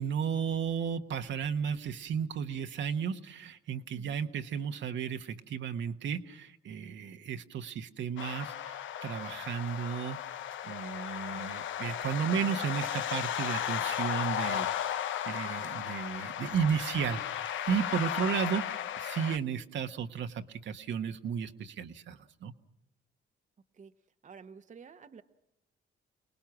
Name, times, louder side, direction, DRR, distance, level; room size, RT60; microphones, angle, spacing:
voice 1, 0.0-10.2 10.6-18.7 19.0-22.5, right 7 dB, 65° right, 6 dB, 1.4 m, -34 dB
sound 1, 8.2-19.4, left 10 dB, 75° left, 1.0 m, -35 dB
voice 2, 24.2-25.2, right 5 dB, 40° right, 8 dB, 1.1 m, -50 dB
29.0 x 19.0 x 6.1 m, 0.87 s
cardioid pair, 90°, 20 cm